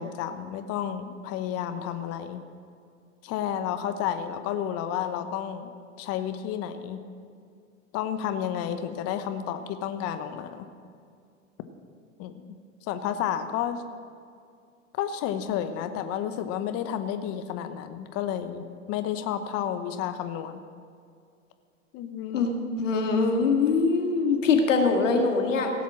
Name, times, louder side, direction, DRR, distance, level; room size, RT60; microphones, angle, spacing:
voice 1, 0.0-2.4 3.2-5.7 6.0-7.0 7.9-10.7 12.2-12.5 12.9-13.8 15.0-20.6 21.9-22.4, left 9 dB, 40° left, 9 dB, 1.0 m, -31 dB
voice 2, 22.8-25.7, left 4 dB, 75° left, 3 dB, 1.9 m, -23 dB
17.0 x 7.3 x 6.0 m, 2.3 s
hypercardioid pair, 95°, 38 cm